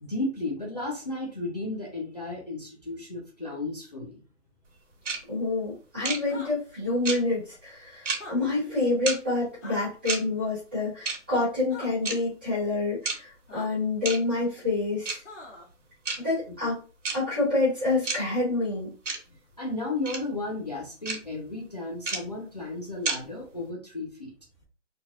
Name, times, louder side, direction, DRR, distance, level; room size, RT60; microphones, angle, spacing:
voice 1, 0.0-4.2 19.6-24.3, left 2 dB, 35° left, -2 dB, 0.4 m, -34 dB
sound 1, 5.1-5.2 6.0-6.2 7.1-7.2 8.1-8.2 9.1-9.2 10.1-10.2 11.1-11.2 12.1-12.2 13.1-13.2 14.1-14.2 15.1-15.2 16.1-16.2 17.0-17.2 18.1-18.2 19.1-19.2 20.1-20.2 21.1-21.2 22.1-22.2 23.1-23.2, right 4 dB, 75° right, 1.1 m, -28 dB
voice 2, 5.3-15.2 16.2-16.8 17.1-18.9, left 2 dB, 10° right, -11 dB, 0.7 m, -27 dB
sound 2, 6.2-6.5 8.1-8.3 9.6-9.9 11.7-11.9 13.5-13.7 15.2-15.7, left 2 dB, 70° left, 1.2 m, -42 dB
3.1 x 2.3 x 2.5 m, 0.35 s
hypercardioid pair, 170°, 37 cm